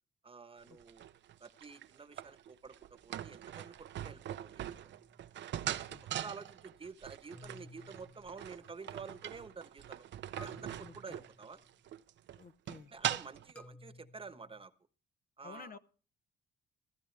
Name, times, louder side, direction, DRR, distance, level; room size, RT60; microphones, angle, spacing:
voice 1, 0.2-1.0 1.4-5.0 6.0-10.1 10.4-11.6 12.9-14.7 15.4-15.8, right 4 dB, 25° right, 11 dB, 1.1 m, -50 dB
sound 1, 0.7-13.5, right 11 dB, 65° right, 0.7 m, -42 dB
sound 2, 4.8-5.4 7.3-9.0 10.4-11.9 13.6-14.7, left 2 dB, 10° left, 0.8 m, -57 dB
voice 2, 5.6-6.1 10.8-10.9 12.4-12.9 15.4-15.8, left 5 dB, 45° left, 12 dB, 0.8 m, -52 dB
15.5 x 14.5 x 3.3 m, 0.38 s
cardioid pair, 90°, 20 cm